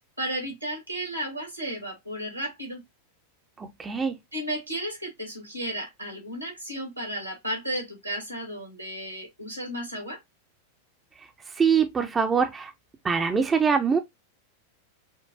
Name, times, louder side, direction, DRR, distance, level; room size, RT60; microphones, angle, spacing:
voice 1, 0.2-2.8 4.3-10.2, right 1 dB, 90° right, 1.8 m, -33 dB
voice 2, 3.6-4.1 11.6-12.7 13.0-14.0, right 6 dB, 15° right, 0.6 m, -23 dB
6.0 x 2.2 x 2.5 m
figure-of-eight pair, 90°, 0 cm